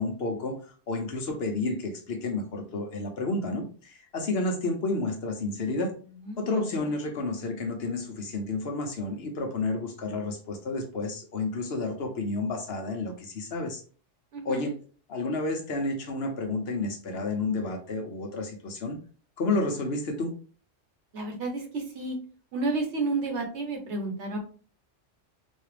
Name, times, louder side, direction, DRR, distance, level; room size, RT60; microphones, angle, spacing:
voice 1, 0.0-6.0 6.4-13.8 14.4-14.7 15.1-19.0 19.4-20.3, left 2 dB, 60° left, 3 dB, 0.9 m, -30 dB
voice 2, 6.2-6.8 14.3-14.7 21.1-22.2 22.5-24.4, right 3 dB, 70° right, 3 dB, 1.2 m, -31 dB
4.0 x 2.4 x 3.2 m, 0.40 s
omnidirectional pair, 1.3 m